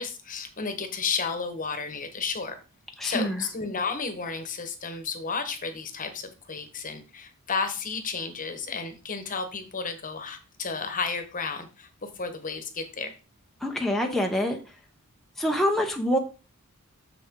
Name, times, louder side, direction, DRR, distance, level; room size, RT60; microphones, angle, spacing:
voice 1, 0.0-2.6 3.0-13.1, left 5 dB, 35° left, 1.1 m, -32 dB
voice 2, 3.0-3.4 13.6-14.6 15.4-16.2, equal, ahead, 0.7 m, -25 dB
6.8 x 6.7 x 3.7 m
head